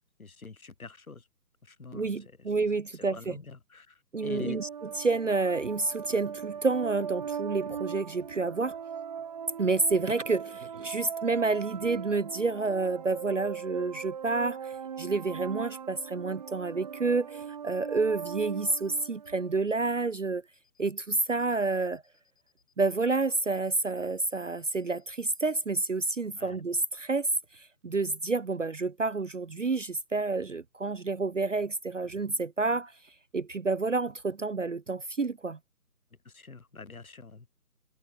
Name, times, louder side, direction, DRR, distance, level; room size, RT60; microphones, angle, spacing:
voice 1, 0.2-1.3 1.6-2.4 2.9-4.6 26.4-26.6 36.3-37.5, left 4 dB, 60° left, 5.2 m, -45 dB
voice 2, 1.9-3.4 4.1-4.7 5.0-8.8 9.6-20.4 20.8-22.0 22.8-27.3 27.5-32.9 33.3-35.6, right 3 dB, 50° right, 0.5 m, -29 dB
sound 1, 4.2-19.6, right 7 dB, 25° right, 3.0 m, -39 dB
sound 2, 18.4-18.5 18.8-18.9 19.2-19.3 19.7-19.8 20.1-20.2 20.5-25.5, left 8 dB, ahead, 1.2 m, -70 dB
figure-of-eight pair, 165°, 48 cm